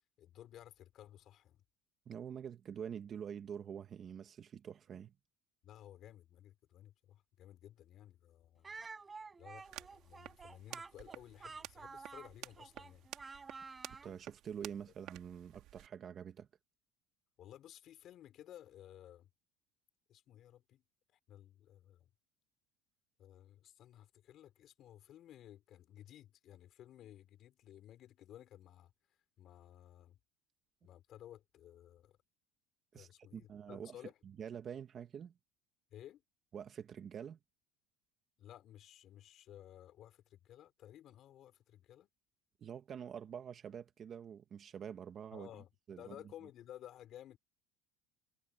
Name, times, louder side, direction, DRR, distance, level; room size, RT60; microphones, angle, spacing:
voice 1, 0.2-1.6 5.6-8.7 9.4-13.1 17.4-19.3 20.1-20.8 21.1-22.1 23.2-28.9 29.4-30.2 30.8-32.2 32.9-34.2 35.9-36.2 38.4-42.1 45.3-45.7 46.0-47.4, left 12 dB, 40° left, 4.6 m, -56 dB
voice 2, 2.0-5.1 14.0-16.5 32.9-33.9 34.4-35.3 36.5-37.4 42.6-45.5 45.9-46.1, right 8 dB, 30° right, 1.5 m, -46 dB
Speech, 8.6-14.1, right 4 dB, 15° right, 5.7 m, -50 dB
sound 1, 9.6-15.9, right 15 dB, 55° right, 3.0 m, -53 dB
cardioid pair, 145°, 0 cm